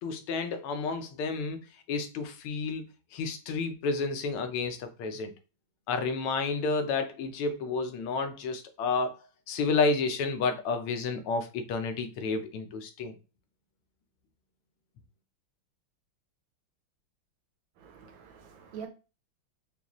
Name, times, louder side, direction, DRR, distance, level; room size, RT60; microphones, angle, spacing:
voice 1, 0.0-1.6 1.9-2.9 3.1-5.3 5.9-9.2 9.5-13.1, left 4 dB, 85° left, 1.6 m, -30 dB
voice 2, 17.8-18.9, right 7 dB, 70° right, 1.3 m, -45 dB
5.2 x 2.3 x 3.0 m
omnidirectional pair, 2.3 m